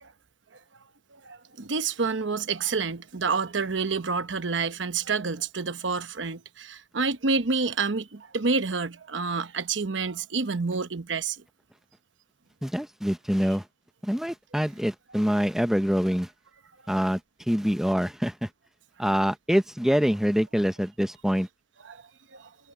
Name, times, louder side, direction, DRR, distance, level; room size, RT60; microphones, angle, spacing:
voice 1, 1.1-11.4 15.3-15.4 21.8-22.0 22.3-22.5, right 4 dB, 80° right, 1.0 m, -28 dB
voice 2, 12.6-13.6 14.0-16.3 16.9-17.2 17.5-18.5 19.0-21.5, equal, ahead, 0.7 m, -25 dB
head